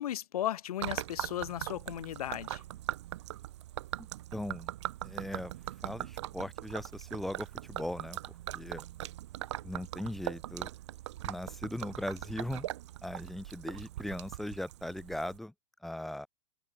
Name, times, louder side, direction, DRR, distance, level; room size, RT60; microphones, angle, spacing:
voice 1, 0.0-2.6, left 11 dB, 75° left, 0.9 m, -35 dB
Gurgling / Liquid, 0.8-15.4, right 14 dB, 50° right, 2.8 m, -41 dB
voice 2, 4.3-4.7 5.0-5.5 5.8-8.2 8.5-8.9 9.6-10.7 11.2-12.7 13.0-15.5 15.8-16.3, left 1 dB, ahead, 0.4 m, -39 dB
supercardioid pair, 170°, 19 cm